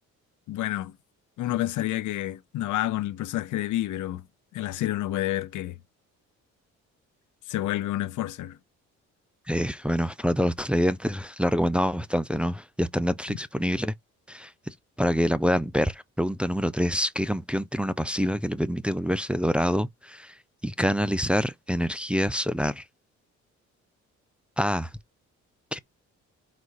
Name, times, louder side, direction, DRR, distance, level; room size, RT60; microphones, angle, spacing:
voice 1, 0.5-0.9 1.4-4.2 4.5-5.8 7.5-8.6, left 14 dB, 80° left, 0.8 m, -29 dB
voice 2, 9.5-13.9 14.3-20.3 20.6-22.8 24.6-24.9 25.7-25.8, equal, 5° right, 0.6 m, -26 dB
4.7 x 4.1 x 4.8 m
cardioid pair, 90°, 30 cm